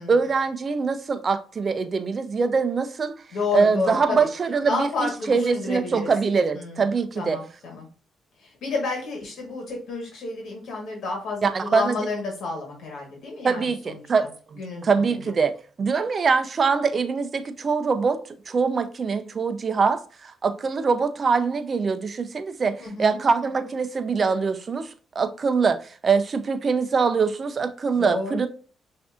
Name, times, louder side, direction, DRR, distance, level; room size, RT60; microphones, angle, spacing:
voice 1, 0.0-3.2 3.5-7.4 11.4-12.0 13.4-15.5 15.8-18.2 18.5-28.5, right 5 dB, 40° right, 0.5 m, -23 dB
voice 2, 3.3-4.3 4.7-6.1 6.5-6.9 7.2-7.9 8.4-14.3 14.6-15.2 22.8-23.2 28.0-28.5, left 3 dB, 70° left, 1.3 m, -31 dB
5.9 x 2.6 x 2.4 m
cardioid pair, 90°, 0 cm